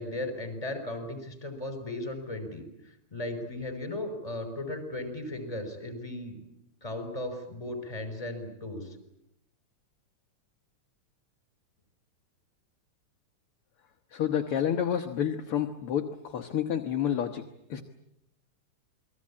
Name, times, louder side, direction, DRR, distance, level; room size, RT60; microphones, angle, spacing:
voice 1, 0.0-2.6 3.1-6.4 6.8-9.0, left 1 dB, 10° left, 8 dB, 5.3 m, -36 dB
voice 2, 14.1-17.4 17.7-17.8, left 9 dB, 60° left, 5 dB, 1.8 m, -29 dB
28.5 x 21.5 x 8.7 m, 0.82 s
omnidirectional pair, 3.4 m